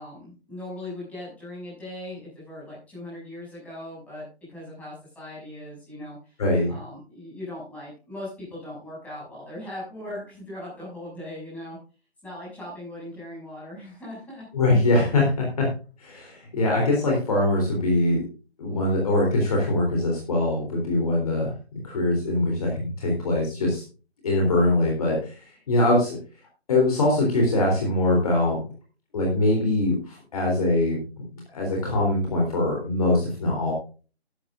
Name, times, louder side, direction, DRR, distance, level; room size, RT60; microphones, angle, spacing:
voice 1, 0.0-6.4 6.7-11.8 12.2-14.5, left 1 dB, 5° left, -7 dB, 6.7 m, -39 dB
voice 2, 6.4-6.7 14.5-15.7 16.0-18.2 18.6-21.5 21.8-23.8 24.2-26.2 26.7-28.6 29.1-31.0 31.3-33.7, left 2 dB, 35° left, -1 dB, 3.6 m, -23 dB
14.0 x 12.0 x 2.5 m, 0.35 s
figure-of-eight pair, 160°, 32 cm